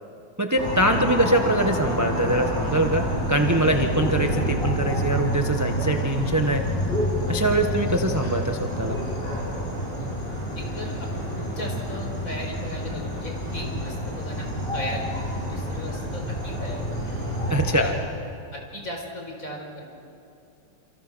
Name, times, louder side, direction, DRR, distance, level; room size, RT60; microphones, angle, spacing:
voice 1, 0.4-6.6 7.3-9.0 17.5-17.9, right 1 dB, 10° right, 4 dB, 0.9 m, -23 dB
sound 1, 0.6-17.9, equal, 30° left, 7.4 m, -28 dB
voice 2, 10.6-14.5 14.7-16.9 17.6-18.0 18.5-19.8, equal, 45° left, 1 dB, 5.0 m, -37 dB
28.5 x 27.5 x 6.2 m, 2.6 s
omnidirectional pair, 2.0 m